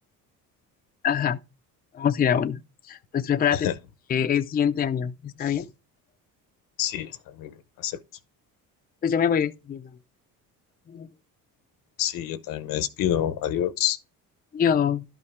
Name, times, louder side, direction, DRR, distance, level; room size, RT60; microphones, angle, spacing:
voice 1, 1.0-1.4 1.9-2.6 2.8-3.7 4.1-5.6 9.0-9.9 10.9-11.1 14.5-15.0, left 8 dB, 25° left, 0.5 m, -24 dB
voice 2, 6.8-8.0 12.0-14.0, left 11 dB, 70° left, 0.9 m, -28 dB
11.5 x 5.5 x 3.6 m
cardioid pair, 120°, 34 cm